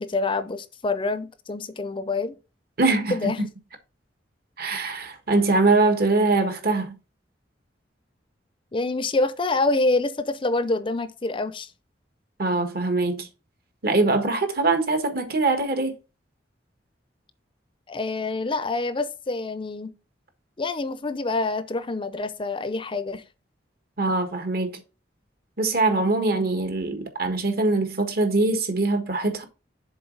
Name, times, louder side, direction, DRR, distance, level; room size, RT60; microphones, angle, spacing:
voice 1, 0.0-2.4 3.1-3.4 8.7-11.7 17.9-19.9 20.6-23.2, left 3 dB, 30° left, 0.5 m, -26 dB
voice 2, 2.8-3.5 4.6-6.9 12.4-13.3 13.8-15.9 24.0-24.8 25.6-29.5, right 3 dB, 55° right, 1.5 m, -23 dB
7.1 x 4.0 x 5.3 m
head